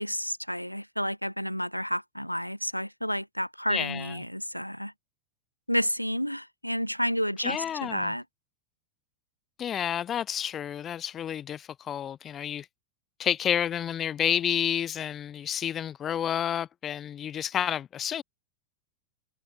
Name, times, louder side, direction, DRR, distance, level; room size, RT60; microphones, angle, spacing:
voice 1, 0.0-4.9 5.7-8.2, equal, 90° left, 1.6 m, -30 dB
voice 2, 3.7-4.2 7.4-8.1 9.6-12.7 13.2-18.2, left 9 dB, 25° left, 1.5 m, -30 dB
figure-of-eight pair, 90°, 0 cm